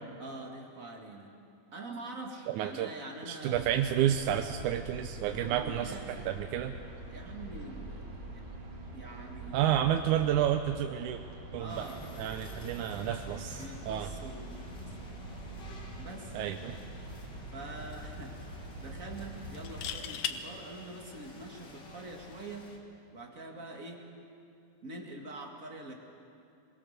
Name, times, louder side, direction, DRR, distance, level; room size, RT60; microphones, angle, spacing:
voice 1, 0.2-1.3 1.7-3.8 5.3-6.4 7.1-8.0 8.3-8.4 8.9-9.6 11.5-12.2 13.6-15.0 16.0-16.4 17.5-18.3 18.8-22.7 23.1-24.0 24.8-25.9, right 2 dB, 30° right, 1 dB, 2.0 m, -45 dB
voice 2, 2.5-2.9 3.3-6.8 9.5-11.2 11.5-11.9 12.2-14.1 16.3-16.8, right 11 dB, 75° right, 6 dB, 2.0 m, -30 dB
sound 1, 3.5-20.0, right 2 dB, 45° right, 4.3 m, -45 dB
sound 2, 11.7-22.8, left 1 dB, 40° left, 2.0 m, -50 dB
sound 3, 16.7-16.9 17.3-17.4 19.5-20.4 22.2-22.4, left 9 dB, 70° left, 1.7 m, -36 dB
22.5 x 22.0 x 6.7 m, 2.5 s
omnidirectional pair, 3.8 m